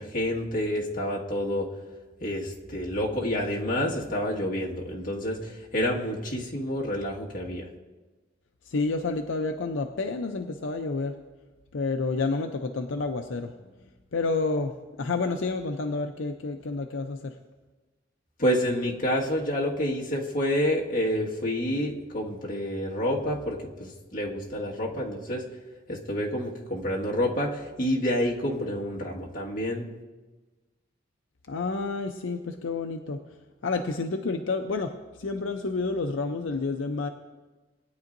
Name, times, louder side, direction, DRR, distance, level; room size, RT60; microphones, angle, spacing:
voice 1, 0.0-1.7 2.2-7.6 18.4-25.4 25.9-29.9, equal, 45° left, -3 dB, 1.8 m, -28 dB
voice 2, 8.7-11.1 11.7-13.5 14.1-14.7 15.0-17.3 31.5-33.2 33.6-37.1, left 3 dB, 80° left, 5 dB, 0.6 m, -29 dB
20.0 x 9.6 x 2.6 m, 1.2 s
head